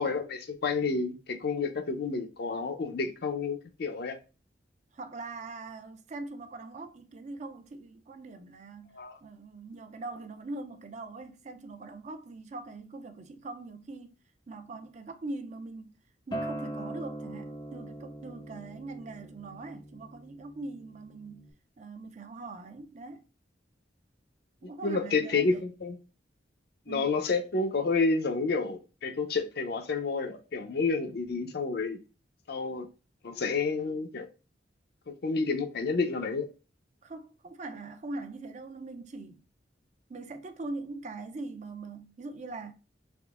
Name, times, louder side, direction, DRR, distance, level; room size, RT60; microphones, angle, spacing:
voice 1, 0.0-4.2 8.9-9.2 24.8-26.0 26.9-32.0 32.5-32.9 33.2-34.3 35.1-36.5, left 4 dB, 60° left, 0.6 m, -30 dB
voice 2, 4.9-14.2 14.5-15.9 16.3-21.5 21.8-23.2 24.6-25.7 26.9-27.1 37.0-39.4 40.1-42.7, right 3 dB, 40° right, 0.4 m, -42 dB
Acoustic guitar, 16.3-21.5, right 1 dB, 25° left, 0.6 m, -41 dB
3.5 x 2.9 x 2.3 m
head